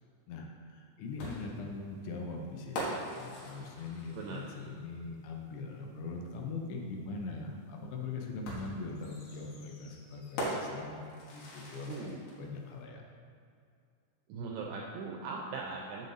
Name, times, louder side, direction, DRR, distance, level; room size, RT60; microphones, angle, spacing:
voice 1, 0.3-13.0, left 3 dB, 80° left, 1 dB, 3.0 m, -41 dB
sound 1, 1.2-4.8 6.3-6.4 8.4-12.4, equal, 65° left, 3.1 m, -41 dB
voice 2, 4.1-4.4 11.9-12.2 14.3-16.1, right 4 dB, 85° right, -1 dB, 2.2 m, -39 dB
7.4 x 6.9 x 3.9 m, 2.3 s
omnidirectional pair, 5.2 m